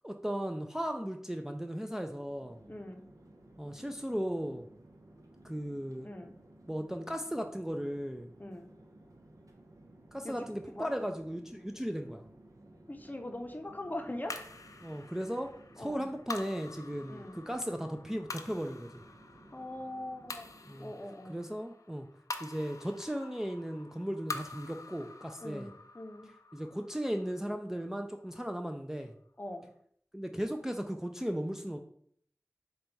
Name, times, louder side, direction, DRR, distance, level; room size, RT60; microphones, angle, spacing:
voice 1, 0.0-2.6 3.6-4.7 5.4-6.1 6.7-8.3 10.1-12.3 14.8-19.0 20.7-20.9 21.3-22.1 22.4-25.7 26.5-29.2 30.1-31.8, equal, 10° right, 4 dB, 0.3 m, -36 dB
Chatter / Fixed-wing aircraft airplane, 2.0-21.0, right 1 dB, 80° right, 0.7 m, -57 dB
voice 2, 2.7-3.0 6.0-6.4 8.4-8.7 10.2-10.3 10.7-10.9 12.9-14.4 15.8-16.1 17.1-17.4 19.5-21.4 25.4-26.3 29.4-29.7, left 1 dB, 30° left, 5 dB, 0.6 m, -42 dB
sound 1, 14.3-28.8, left 3 dB, 80° left, 0.4 m, -47 dB
3.9 x 2.3 x 4.4 m, 0.64 s
wide cardioid pair, 40°, 6 cm